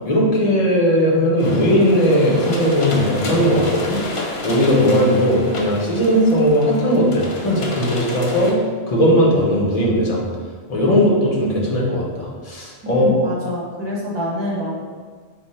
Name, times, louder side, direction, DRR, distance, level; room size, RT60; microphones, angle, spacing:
voice 1, 0.0-4.0 4.4-8.5 8.9-10.2 10.7-13.3, equal, 40° left, -3 dB, 0.7 m, -17 dB
sound 1, 1.4-8.5, left 2 dB, 55° left, 0.3 m, -30 dB
voice 2, 12.8-14.7, left 1 dB, 30° right, -4 dB, 0.6 m, -25 dB
3.4 x 2.1 x 4.1 m, 1.5 s
omnidirectional pair, 1.2 m